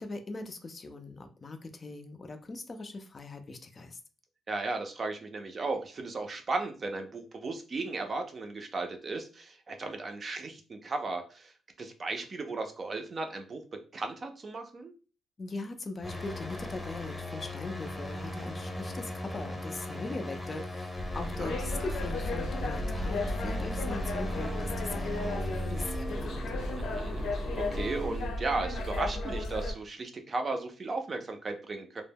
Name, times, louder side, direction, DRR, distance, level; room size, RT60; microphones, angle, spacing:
voice 1, 0.0-4.0 15.4-26.4, left 3 dB, 30° left, 7 dB, 0.4 m, -40 dB
voice 2, 4.5-11.5 11.8-13.6 13.9-14.9 21.4-21.6 26.8-32.0, right 3 dB, 35° right, 5 dB, 0.4 m, -35 dB
sound 1, 16.0-28.2, left 1 dB, 5° left, 0.8 m, -38 dB
sound 2, 20.9-29.7, left 1 dB, 80° left, 0.6 m, -34 dB
2.1 x 2.0 x 3.4 m, 0.36 s
cardioid pair, 110°, 0 cm